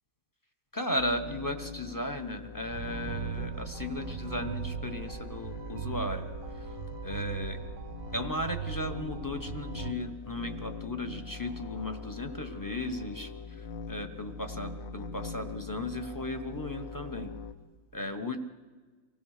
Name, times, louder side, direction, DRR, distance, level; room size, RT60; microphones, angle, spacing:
voice 1, 0.7-6.2 6.5-6.7 7.0-7.6 8.1-17.3 17.9-18.4, left 1 dB, 15° left, 7 dB, 0.7 m, -36 dB
sound 1, 1.0-17.5, left 4 dB, 55° left, 1.2 m, -42 dB
sound 2, 2.7-9.9, right 10 dB, 55° right, 0.9 m, -39 dB
24.5 x 16.5 x 6.6 m, 1.4 s
omnidirectional pair, 1.9 m